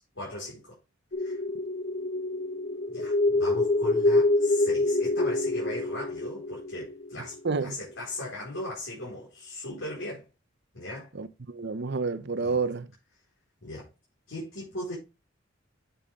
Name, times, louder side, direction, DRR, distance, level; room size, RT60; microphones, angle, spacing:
voice 1, 0.1-0.8 1.2-1.4 2.9-10.3 10.7-11.1 12.4-12.6 13.6-13.9 14.3-14.9, left 1 dB, 85° left, 4.7 m, -38 dB
sound 1, 1.1-7.6, left 2 dB, 55° left, 1.9 m, -26 dB
voice 2, 7.4-7.8 11.1-12.9, right 4 dB, 60° right, 0.8 m, -29 dB
8.9 x 7.0 x 3.7 m
head